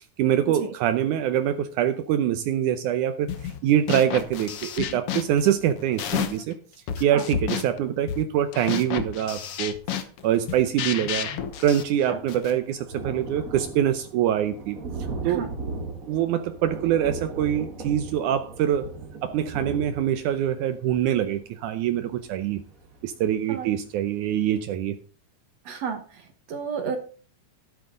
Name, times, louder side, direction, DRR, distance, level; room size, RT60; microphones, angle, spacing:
voice 1, 0.2-6.6 7.0-9.8 10.2-11.3 11.6-14.8 15.2-15.5 16.1-18.9 19.2-22.6 23.0-25.0, right 10 dB, 80° right, 10 dB, 2.2 m, -24 dB
sound 1, 3.3-3.6 3.9-6.5 6.9-12.6, left 9 dB, 60° left, 1.8 m, -31 dB
Thunder, 10.4-10.5 10.7-23.4 23.9-24.0 24.3-24.4, right 3 dB, 35° right, 1.6 m, -38 dB
voice 2, 25.7-27.0, right 6 dB, 60° right, 7 dB, 2.3 m, -32 dB
12.5 x 11.0 x 3.8 m, 0.39 s
omnidirectional pair, 3.6 m